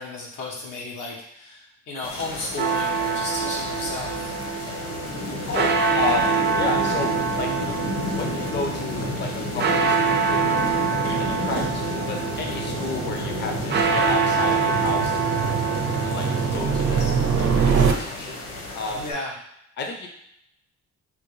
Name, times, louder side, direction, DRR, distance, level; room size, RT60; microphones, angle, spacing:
voice 1, 0.0-4.3 18.9-19.3, left 2 dB, 90° left, -3 dB, 1.1 m, -33 dB
sound 1, 2.0-19.1, left 2 dB, 55° left, 1.0 m, -32 dB
sound 2, 2.6-17.5, right 5 dB, 35° right, 0.4 m, -26 dB
voice 2, 5.5-7.1 7.4-7.5 8.2-10.7 11.1-15.2 16.0-16.3 16.5-18.4 18.7-19.0 19.8-20.1, left 4 dB, 35° left, 3 dB, 0.5 m, -32 dB
sound 3, 7.4-17.9, right 5 dB, 70° right, 0.7 m, -27 dB
3.5 x 2.5 x 3.1 m, 0.76 s
cardioid pair, 90°, 30 cm